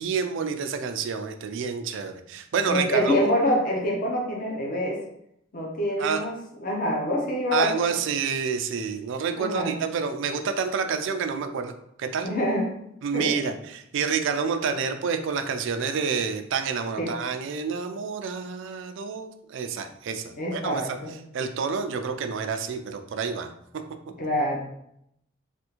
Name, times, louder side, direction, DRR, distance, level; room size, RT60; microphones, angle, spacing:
voice 1, 0.0-3.3 6.0-6.2 7.5-11.7 12.0-12.3 13.0-21.0 21.3-23.5, right 6 dB, 65° right, 7 dB, 0.4 m, -28 dB
voice 2, 2.7-5.0 5.5-6.3 6.6-7.8 9.4-9.8 12.2-12.7 13.1-13.4 17.0-17.1 20.4-21.1 24.2-24.6, equal, 45° left, -1 dB, 0.8 m, -26 dB
3.4 x 2.4 x 2.9 m, 0.75 s
head